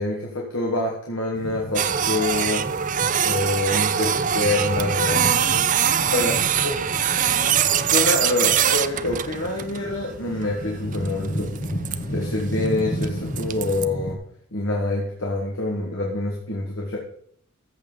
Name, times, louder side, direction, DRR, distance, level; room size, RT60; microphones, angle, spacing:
voice 1, 0.0-2.6 3.2-5.3 6.1-6.4 6.6-6.7 7.9-11.5 12.1-14.2 14.5-17.0, left 2 dB, 60° left, -2 dB, 1.7 m, -26 dB
sound 1, 1.3-14.1, equal, 40° left, 1.5 m, -33 dB
Printer, 1.8-13.9, right 9 dB, 35° right, 0.4 m, -24 dB
voice 2, 5.5-7.9, right 1 dB, 55° right, -5 dB, 4.8 m, -38 dB
13.5 x 7.3 x 3.9 m, 0.65 s
head